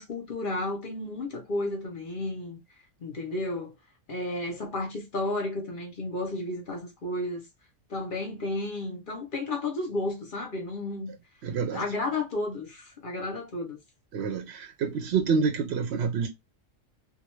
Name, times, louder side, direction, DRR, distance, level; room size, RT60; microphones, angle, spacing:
voice 1, 0.0-2.6 3.0-3.7 4.1-7.4 7.9-11.1 11.7-13.8, left 2 dB, 50° left, 0.8 m, -32 dB
voice 2, 11.4-11.8 14.1-16.3, right 5 dB, 65° right, 0.8 m, -27 dB
2.5 x 2.2 x 3.0 m
omnidirectional pair, 1.3 m